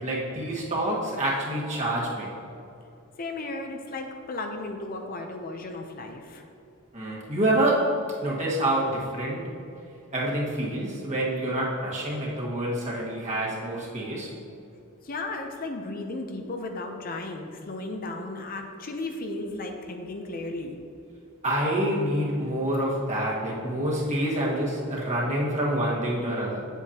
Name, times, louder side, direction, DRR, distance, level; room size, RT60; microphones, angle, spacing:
voice 1, 0.0-2.3 6.9-9.5 10.1-14.3 21.4-26.6, right 1 dB, 35° right, -4 dB, 1.6 m, -27 dB
voice 2, 3.2-6.4 15.0-20.8, left 2 dB, 45° left, 4 dB, 0.6 m, -35 dB
8.1 x 8.0 x 2.9 m, 2.7 s
head